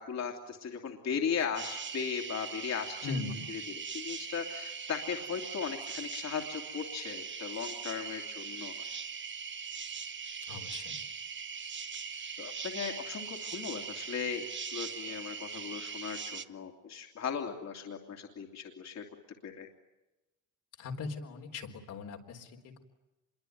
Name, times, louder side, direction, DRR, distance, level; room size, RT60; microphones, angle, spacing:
voice 1, 0.0-3.1 3.5-3.6 3.9-8.7 12.4-19.0 19.4-19.7, left 7 dB, 60° left, 2 dB, 2.8 m, -37 dB
sound 1, 1.5-16.4, right 6 dB, 40° right, 1.2 m, -41 dB
voice 2, 3.0-3.5 10.5-11.0 20.8-22.8, left 4 dB, 85° left, 1 dB, 4.0 m, -39 dB
26.5 x 23.0 x 9.3 m, 1.0 s
cardioid pair, 90°, 30 cm